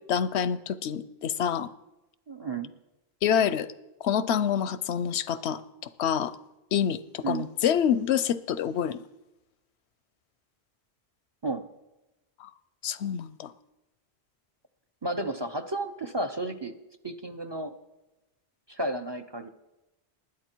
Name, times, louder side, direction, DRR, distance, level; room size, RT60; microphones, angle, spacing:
voice 1, 0.1-1.7 3.2-3.7 4.0-6.4 6.7-9.0 12.4-12.5 12.8-13.5, left 8 dB, 90° left, 15 dB, 0.9 m, -27 dB
voice 2, 2.3-2.7 7.2-7.5 11.4-11.7 15.0-16.7 17.0-17.7 18.7-19.5, right 2 dB, 30° right, 9 dB, 0.6 m, -32 dB
20.0 x 9.8 x 4.5 m, 0.99 s
omnidirectional pair, 1.1 m